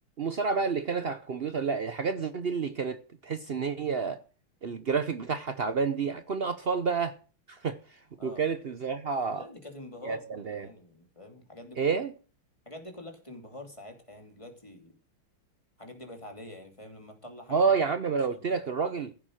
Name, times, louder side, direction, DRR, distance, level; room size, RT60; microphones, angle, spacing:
voice 1, 0.2-4.2 4.6-7.1 7.5-7.8 8.2-9.4 10.0-10.2 10.4-10.7 11.8-12.1 17.5-19.1, right 5 dB, 80° right, 0.5 m, -29 dB
voice 2, 9.3-11.9 12.7-14.9 15.8-17.6 18.1-18.6, left 1 dB, 15° left, 2.7 m, -46 dB
16.0 x 7.5 x 6.5 m
omnidirectional pair, 2.3 m